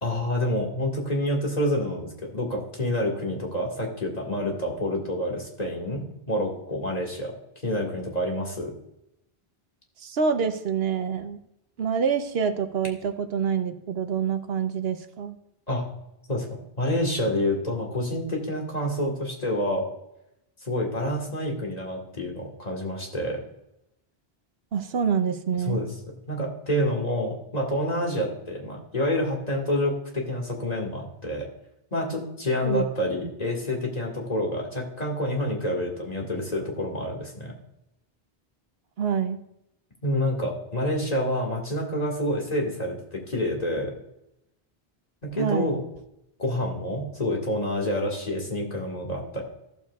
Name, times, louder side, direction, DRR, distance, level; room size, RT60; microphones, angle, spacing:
voice 1, 0.0-7.3 7.6-8.7 15.7-15.9 16.3-19.9 20.6-23.4 25.7-25.9 26.3-31.5 31.9-37.5 40.0-43.9 45.2-45.8 46.4-49.4, left 1 dB, 40° left, -1 dB, 1.9 m, -28 dB
voice 2, 10.0-11.4 11.8-15.4 24.7-25.8 32.6-32.8 39.0-39.4 45.3-45.8, right 7 dB, 75° right, 9 dB, 0.9 m, -26 dB
14.0 x 7.2 x 2.3 m, 0.84 s
omnidirectional pair, 1.0 m